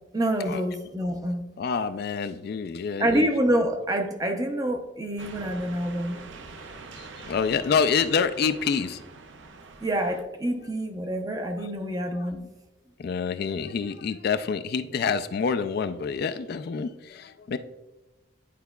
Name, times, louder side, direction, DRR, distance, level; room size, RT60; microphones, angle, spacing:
voice 1, 0.1-1.4 3.0-6.2 9.8-12.4, right 1 dB, 20° right, 5 dB, 0.6 m, -27 dB
voice 2, 1.6-3.3 7.0-9.0 12.3-12.4 13.0-17.6, left 6 dB, 55° left, 9 dB, 0.3 m, -27 dB
sound 1, 5.2-10.2, right 3 dB, 70° right, 0.6 m, -44 dB
10.0 x 4.7 x 2.3 m, 1.0 s
head